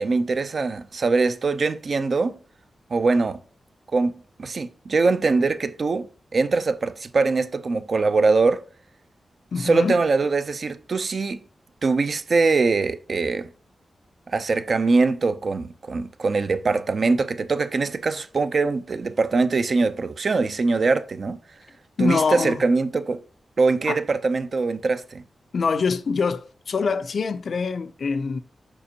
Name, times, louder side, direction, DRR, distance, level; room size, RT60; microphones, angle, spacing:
voice 1, 0.0-2.3 2.9-3.4 3.9-4.1 4.4-6.1 6.3-8.6 9.6-11.4 11.8-13.5 14.3-21.4 22.0-23.2 23.6-25.2, right 3 dB, 45° right, 0.4 m, -22 dB
voice 2, 9.5-10.0 22.0-22.6 23.9-24.0 25.5-28.4, left 5 dB, 55° left, 0.3 m, -24 dB
6.8 x 5.0 x 2.7 m
wide cardioid pair, 165°, 0 cm